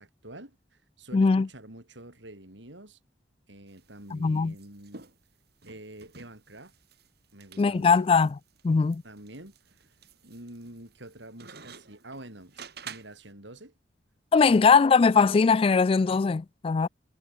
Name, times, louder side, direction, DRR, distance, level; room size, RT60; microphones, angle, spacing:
voice 1, 0.0-3.0 3.5-5.0 5.7-6.7 7.3-8.1 9.0-9.9 10.2-13.7 14.5-14.8, right 1 dB, 80° right, 6.9 m, -47 dB
voice 2, 1.1-1.5 4.1-4.5 7.6-8.3 8.6-9.0 14.3-16.9, left 5 dB, 30° left, 0.3 m, -21 dB
sound 1, 3.7-13.3, right 6 dB, 60° right, 7.0 m, -50 dB
head